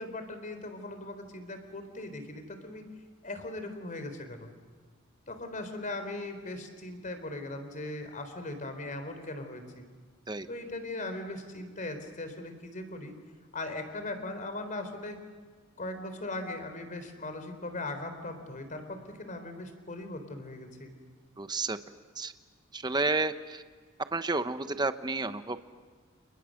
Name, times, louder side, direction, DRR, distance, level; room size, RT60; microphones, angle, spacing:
voice 1, 0.0-2.8 3.2-4.5 5.3-9.8 10.5-13.1 13.5-15.2 15.8-20.9, left 2 dB, 40° left, 8 dB, 4.0 m, -39 dB
voice 2, 21.4-21.8 22.2-22.3 22.7-23.6 24.1-25.7, right 3 dB, 20° right, 10 dB, 1.0 m, -31 dB
30.0 x 29.5 x 6.5 m, 1.5 s
head